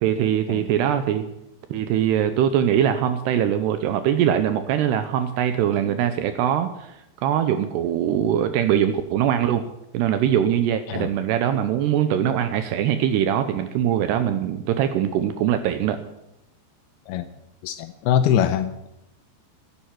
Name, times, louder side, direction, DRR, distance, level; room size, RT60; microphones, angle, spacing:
voice 1, 0.0-1.2 1.7-9.6 9.9-16.0, right 10 dB, 80° right, 10 dB, 2.6 m, -22 dB
voice 2, 17.6-18.9, left 9 dB, 90° left, 10 dB, 2.2 m, -23 dB
11.5 x 10.5 x 9.1 m, 0.88 s
omnidirectional pair, 5.3 m